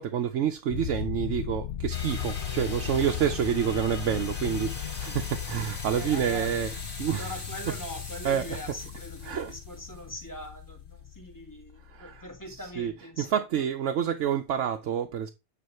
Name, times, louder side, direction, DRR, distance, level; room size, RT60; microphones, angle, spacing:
voice 1, 0.0-7.4 7.7-7.8 8.2-8.6 9.2-9.5 11.9-15.3, right 9 dB, 90° right, 1.1 m, -29 dB
sound 1, 0.7-12.9, left 11 dB, 70° left, 0.8 m, -37 dB
sound 2, 1.9-10.2, left 2 dB, 45° left, 2.2 m, -41 dB
voice 2, 5.9-6.7 7.0-13.4, equal, 15° left, 1.8 m, -42 dB
9.3 x 3.1 x 5.6 m
omnidirectional pair, 1.2 m